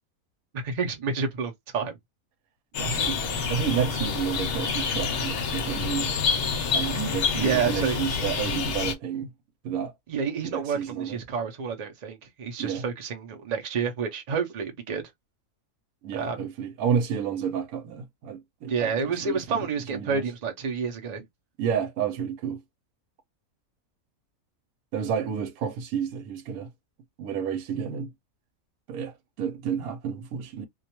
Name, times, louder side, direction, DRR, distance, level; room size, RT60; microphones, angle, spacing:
voice 1, 0.5-2.0 7.4-8.0 10.1-15.1 16.1-16.5 18.7-21.3, right 5 dB, 50° right, 0.5 m, -29 dB
sound 1, 2.7-8.9, left 5 dB, 60° left, 0.7 m, -28 dB
voice 2, 2.8-3.2 3.5-6.1 6.7-9.3 9.6-9.9 10.5-11.2 12.6-12.8 16.0-19.7 19.9-20.2 21.6-22.6 24.9-26.7 27.2-28.1 28.9-30.7, right 7 dB, 90° right, 1.1 m, -30 dB
2.3 x 2.2 x 2.8 m
omnidirectional pair, 1.5 m